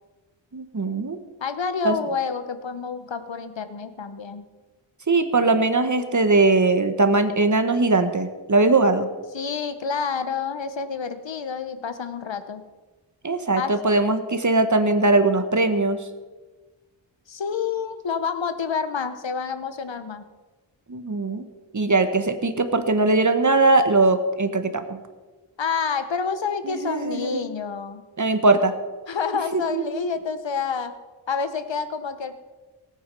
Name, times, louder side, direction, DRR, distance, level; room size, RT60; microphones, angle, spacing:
voice 1, 0.5-1.2 1.8-2.0 5.1-9.1 13.2-16.0 20.9-21.4 21.7-25.0 26.6-27.4 28.2-28.7 29.5-30.0, right 3 dB, 40° right, 9 dB, 1.2 m, -20 dB
voice 2, 1.4-4.4 9.3-12.6 13.6-14.0 17.3-20.3 25.6-28.0 29.1-30.9 31.3-32.4, left 6 dB, 70° left, 11 dB, 1.1 m, -28 dB
18.5 x 8.8 x 5.4 m, 1.3 s
wide cardioid pair, 95°, 47 cm